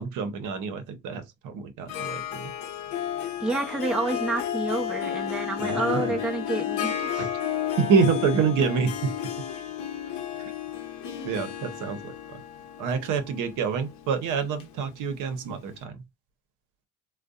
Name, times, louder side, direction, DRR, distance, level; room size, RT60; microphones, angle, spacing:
voice 1, 0.0-2.5 5.6-6.1 7.2-7.3 7.8-9.1 10.4-10.5 11.2-12.4 12.8-16.0, right 5 dB, 65° right, 0.8 m, -27 dB
Harp, 1.9-15.4, left 10 dB, 65° left, 0.8 m, -32 dB
voice 2, 3.4-7.3 11.1-11.3, right 2 dB, 5° right, 0.5 m, -29 dB
2.6 x 2.2 x 2.3 m
supercardioid pair, 85°, 33 cm